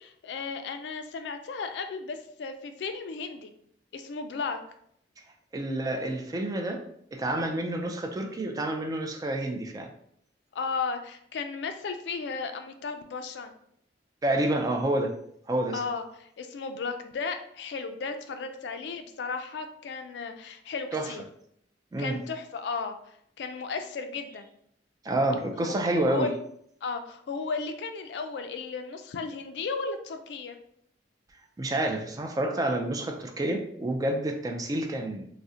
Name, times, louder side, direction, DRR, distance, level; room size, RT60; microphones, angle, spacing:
voice 1, 0.0-3.5 3.9-4.6 10.5-13.5 15.7-21.2 22.0-24.5 25.5-25.8 26.0-26.3 26.8-30.6, left 4 dB, 70° left, 8 dB, 0.3 m, -35 dB
voice 2, 5.5-6.8 7.1-9.9 14.2-15.1 15.5-15.8 20.9-21.1 21.9-22.2 25.0-26.3 31.6-35.3, right 1 dB, 20° right, 3 dB, 0.3 m, -28 dB
2.6 x 2.0 x 3.6 m, 0.69 s
head